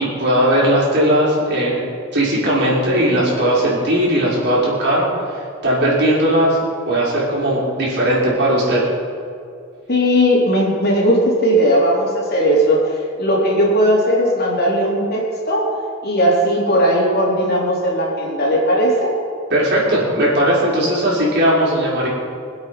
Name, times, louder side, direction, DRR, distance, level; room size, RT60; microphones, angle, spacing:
voice 1, 0.0-1.8 2.1-6.6 6.9-8.8 19.5-22.1, right 1 dB, 55° right, -5 dB, 4.9 m, -17 dB
voice 2, 9.9-15.7 16.0-19.1, equal, 50° left, -3 dB, 3.7 m, -17 dB
24.5 x 8.3 x 6.0 m, 2.3 s
head